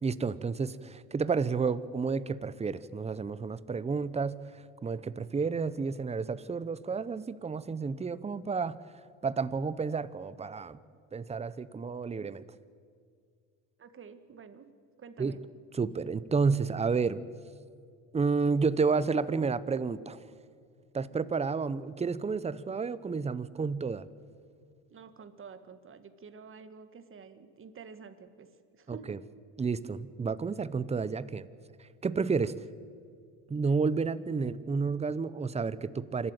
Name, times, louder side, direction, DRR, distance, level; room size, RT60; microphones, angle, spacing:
voice 1, 0.0-4.4 4.8-8.8 9.2-10.8 11.1-12.4 15.2-15.4 15.7-17.2 18.1-20.2 20.9-24.1 28.9-29.2 29.6-31.5 32.0-32.5 33.5-36.3, right 5 dB, 15° right, 16 dB, 0.8 m, -31 dB
voice 2, 13.8-14.7 15.0-15.4 24.9-28.5 28.7-29.2, right 6 dB, 35° right, 10 dB, 1.8 m, -49 dB
26.5 x 12.5 x 8.9 m, 2.2 s
supercardioid pair, 105°, 37 cm